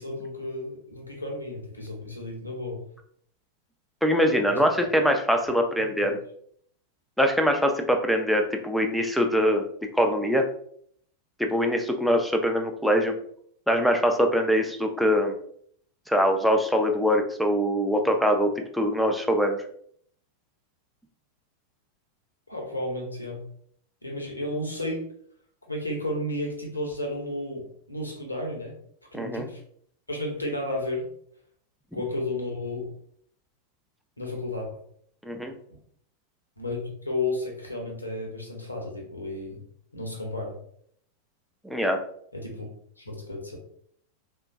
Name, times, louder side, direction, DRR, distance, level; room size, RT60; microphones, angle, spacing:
voice 1, 0.0-2.8 4.4-4.6 5.8-5.9 22.5-23.4 24.0-25.1 25.7-28.8 29.1-29.6 30.1-31.1 31.9-32.9 34.2-34.8 36.6-39.6 39.9-40.5 42.3-42.7 43.0-43.6, left 1 dB, 85° left, 1 dB, 0.7 m, -32 dB
voice 2, 4.0-6.2 7.2-9.6 9.9-10.5 11.4-13.2 13.7-15.4 16.1-19.6 29.1-29.4 35.2-35.5 41.6-42.0, equal, ahead, 4 dB, 0.4 m, -23 dB
3.5 x 2.2 x 2.5 m, 0.64 s
figure-of-eight pair, 90°, 0 cm